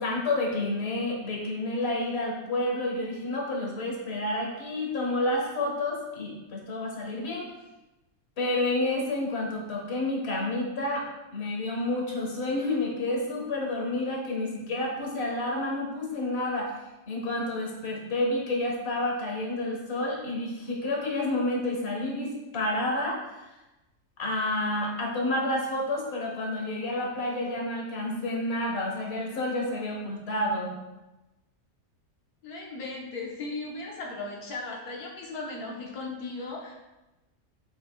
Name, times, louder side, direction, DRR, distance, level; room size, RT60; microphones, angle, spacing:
voice 1, 0.0-7.5 8.4-11.1 11.3-16.7 17.1-23.5 24.2-30.7, left 1 dB, 45° left, -1 dB, 1.5 m, -29 dB
voice 2, 32.4-36.7, left 3 dB, 85° left, -2 dB, 1.5 m, -37 dB
8.0 x 5.2 x 2.2 m, 1.0 s
omnidirectional pair, 1.5 m